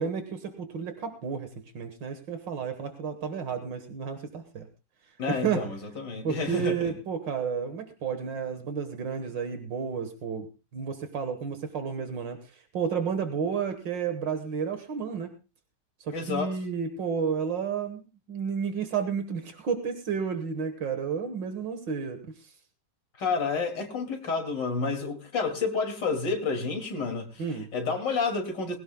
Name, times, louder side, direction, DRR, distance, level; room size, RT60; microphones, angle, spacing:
voice 1, 0.0-1.5 1.7-4.7 5.3-5.6 6.2-10.5 10.7-15.3 16.0-22.5 27.4-27.7, right 6 dB, 75° right, 2.1 m, -31 dB
voice 2, 5.2-7.0 16.1-16.5 23.2-27.4 27.7-28.8, left 4 dB, 70° left, 3.2 m, -30 dB
21.0 x 16.5 x 2.3 m
omnidirectional pair, 2.0 m